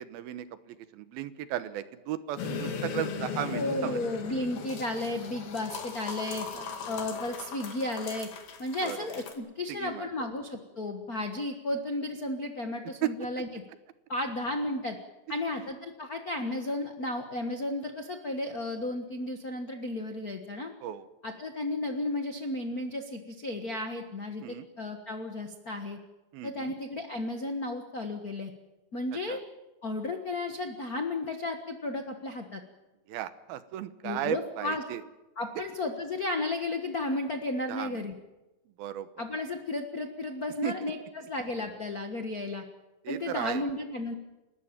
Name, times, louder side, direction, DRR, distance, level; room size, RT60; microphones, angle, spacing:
voice 1, 0.0-4.0 6.5-6.9 8.8-9.0 9.7-10.3 13.0-13.1 15.3-15.7 20.8-21.1 24.4-24.7 26.3-26.7 29.3-29.4 33.1-35.0 37.7-38.0 38.8-39.2 40.6-40.7 43.0-43.7, right 12 dB, 85° right, 12 dB, 2.9 m, -36 dB
sound 1, 2.4-9.3, left 6 dB, 85° left, 4.1 m, -38 dB
voice 2, 3.5-6.5 6.9-8.3 8.6-13.5 14.1-15.0 15.3-20.7 21.2-26.0 26.4-28.5 28.9-29.4 29.8-32.6 34.0-34.8 35.4-38.1 39.2-42.6 43.1-44.1, left 2 dB, 65° left, 5 dB, 0.9 m, -33 dB
30.0 x 13.0 x 9.0 m, 1.1 s
omnidirectional pair, 4.2 m